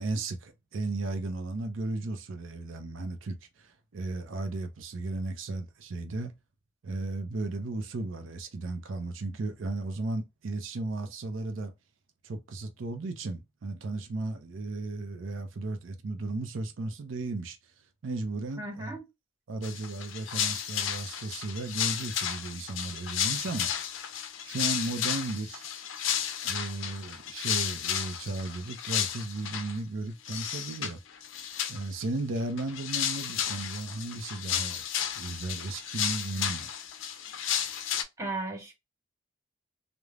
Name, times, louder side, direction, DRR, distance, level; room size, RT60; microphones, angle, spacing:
voice 1, 0.0-6.3 6.8-11.7 12.2-17.6 18.0-19.0 19.5-23.7 24.4-25.7 26.4-31.0 31.7-34.8 35.1-36.7, right 2 dB, 85° right, 0.5 m, -35 dB
voice 2, 18.6-19.0 23.5-23.6 38.2-38.7, right 2 dB, 15° right, 0.7 m, -36 dB
sound 1, 19.6-29.8 30.3-30.9 31.2-32.0 32.4-38.0, left 9 dB, 80° left, 0.4 m, -33 dB
3.2 x 2.0 x 2.3 m
head